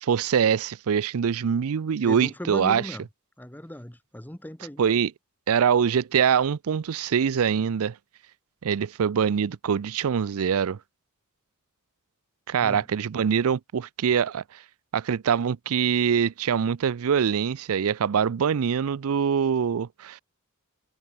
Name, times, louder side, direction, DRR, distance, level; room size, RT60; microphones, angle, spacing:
voice 1, 0.0-2.8 4.8-5.1 5.5-8.0 8.6-10.8 12.5-14.6 14.9-20.2, right 7 dB, 70° right, 0.4 m, -24 dB
voice 2, 2.0-3.0 3.4-4.8 12.6-12.8, left 1 dB, 10° left, 1.1 m, -37 dB
head